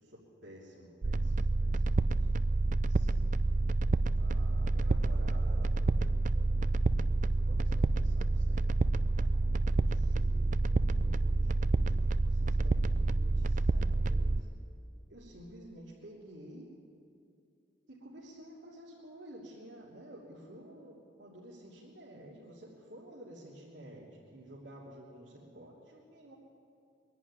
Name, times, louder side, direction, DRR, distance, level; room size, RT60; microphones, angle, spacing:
voice 1, 0.0-1.3 1.6-1.8 2.2-2.3 2.8-3.3 4.2-8.7 9.1-14.4 15.1-16.7 17.9-26.3, right 1 dB, 80° right, -8 dB, 3.2 m, -52 dB
sound 1, 1.0-14.4, right 2 dB, 45° right, 0.5 m, -28 dB
23.5 x 11.0 x 9.8 m, 2.4 s
head